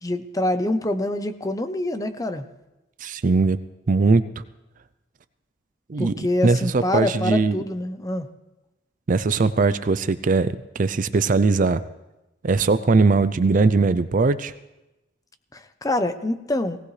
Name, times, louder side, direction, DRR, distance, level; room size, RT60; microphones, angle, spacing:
voice 1, 0.0-2.4 6.0-8.3 15.5-16.8, left 1 dB, 20° left, 9 dB, 0.7 m, -25 dB
voice 2, 3.0-3.6 3.9-4.2 5.9-7.6 9.1-11.8 12.4-14.5, right 4 dB, 45° right, 13 dB, 0.4 m, -20 dB
18.0 x 17.5 x 3.3 m, 0.99 s
head